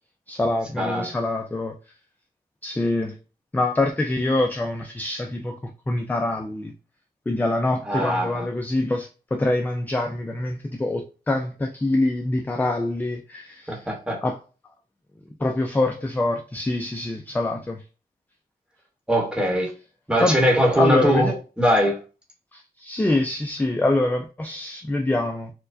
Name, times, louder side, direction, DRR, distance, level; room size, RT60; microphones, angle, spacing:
voice 1, 0.3-1.8 2.6-3.2 3.5-5.6 5.9-6.7 7.3-13.8 14.2-14.4 15.4-17.8 20.2-20.4 20.8-21.3 22.5-25.5, left 2 dB, 10° left, 0.3 m, -25 dB
voice 2, 7.9-8.5 13.7-14.2 19.1-19.7 20.1-22.0, equal, 5° right, 1.1 m, -21 dB
4.4 x 2.1 x 2.6 m
wide cardioid pair, 140°, 16 cm